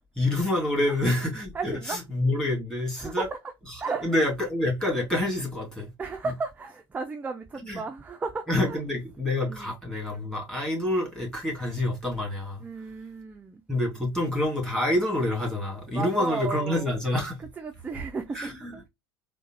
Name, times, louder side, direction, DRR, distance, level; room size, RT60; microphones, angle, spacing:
voice 1, 0.1-3.3 4.0-5.9 7.6-7.8 8.5-12.6 13.7-17.4 18.3-18.9, left 1 dB, 5° left, 1.7 m, -27 dB
voice 2, 1.5-2.0 3.0-3.4 3.8-4.1 6.0-8.8 9.4-9.7 12.6-13.6 15.9-16.9 17.4-18.9, right 4 dB, 10° right, 0.3 m, -34 dB
3.6 x 2.0 x 2.7 m
figure-of-eight pair, 70°, 13 cm